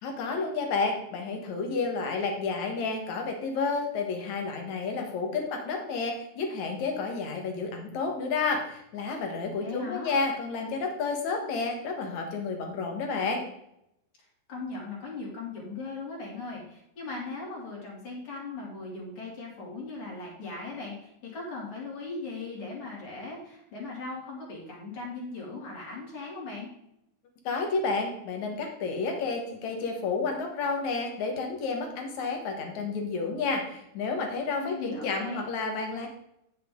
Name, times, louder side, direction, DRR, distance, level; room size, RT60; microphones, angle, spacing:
voice 1, 0.0-13.4 27.4-36.1, left 4 dB, 60° left, 2 dB, 2.8 m, -30 dB
voice 2, 9.6-10.2 14.5-26.7 34.6-35.4, left 3 dB, 40° left, -3 dB, 3.7 m, -38 dB
10.0 x 7.7 x 3.9 m, 0.79 s
omnidirectional pair, 4.1 m